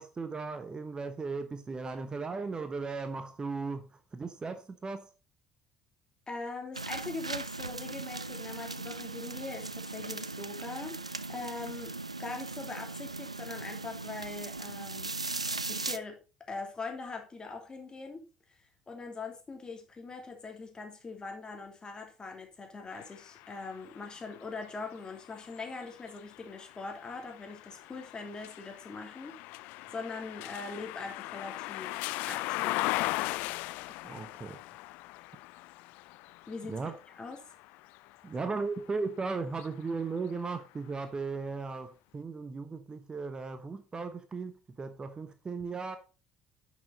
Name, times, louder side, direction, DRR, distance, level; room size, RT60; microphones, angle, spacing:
voice 1, 0.0-5.1 34.0-34.6 36.7-37.0 38.2-46.0, right 4 dB, 25° right, 1.0 m, -36 dB
voice 2, 6.3-11.0 11.3-11.9 12.2-15.1 15.7-16.2 16.5-18.2 18.9-32.9 36.5-36.8 37.2-37.4, left 3 dB, 25° left, 3.0 m, -42 dB
sound 1, 6.7-16.0, right 3 dB, 90° right, 0.3 m, -38 dB
sound 2, 22.9-38.9 39.4-40.7, left 21 dB, 60° left, 0.4 m, -39 dB
10.5 x 6.4 x 4.1 m
figure-of-eight pair, 55°, 3 cm